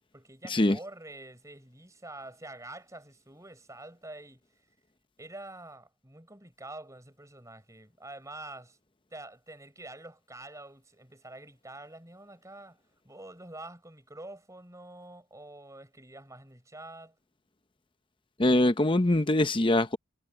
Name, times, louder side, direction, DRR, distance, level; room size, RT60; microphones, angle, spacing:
voice 1, 0.1-4.5 5.2-8.8 9.1-17.2, right 2 dB, 15° right, 6.1 m, -47 dB
voice 2, 18.4-20.0, left 1 dB, 25° left, 0.8 m, -23 dB
head